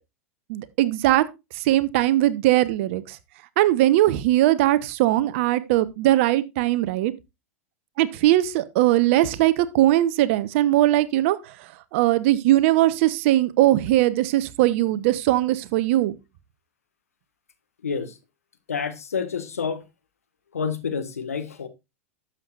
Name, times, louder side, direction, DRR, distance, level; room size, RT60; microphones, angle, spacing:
voice 1, 0.5-1.2 1.5-3.2 3.6-7.1 8.0-16.1, right 15 dB, 60° right, 1.1 m, -20 dB
voice 2, 17.8-18.2 18.7-19.8 20.5-21.7, left 6 dB, 85° left, 1.7 m, -28 dB
12.0 x 7.7 x 2.5 m
hypercardioid pair, 100°, 8 cm